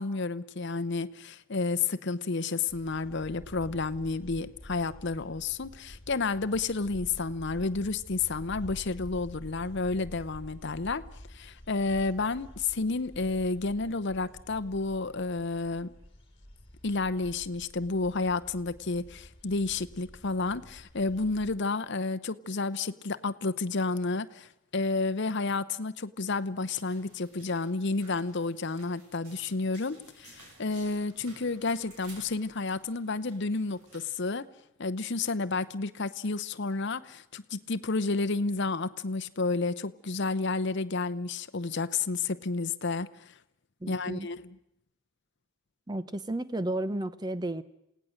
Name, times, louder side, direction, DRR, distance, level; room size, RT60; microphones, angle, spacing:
voice 1, 0.0-11.1 11.3-15.9 16.8-34.5 34.8-43.3 43.9-44.4, left 3 dB, 55° left, 12 dB, 0.8 m, -31 dB
sound 1, 2.7-21.6, equal, 25° left, 3.7 m, -49 dB
sound 2, 26.6-34.2, right 2 dB, 90° right, 6.3 m, -56 dB
voice 2, 43.8-44.3 45.9-47.6, right 1 dB, 20° right, 14 dB, 0.7 m, -32 dB
28.0 x 17.5 x 6.5 m, 0.82 s
head